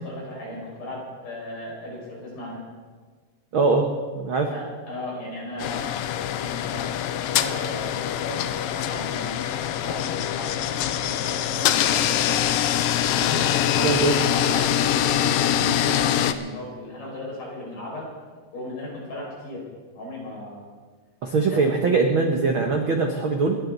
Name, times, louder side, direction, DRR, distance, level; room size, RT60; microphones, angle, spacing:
voice 1, 0.0-2.6 4.5-5.9 6.3-12.4 12.9-18.1 18.5-19.6 19.9-20.7 21.4-21.6, left 1 dB, 65° left, -4 dB, 7.1 m, -36 dB
voice 2, 3.5-3.9 4.1-4.5 13.8-14.1 21.2-23.6, right 4 dB, 65° right, 2 dB, 1.3 m, -21 dB
sound 1, 5.6-16.3, left 11 dB, 85° left, 2.4 m, -24 dB
28.0 x 11.5 x 4.0 m, 1.4 s
omnidirectional pair, 4.1 m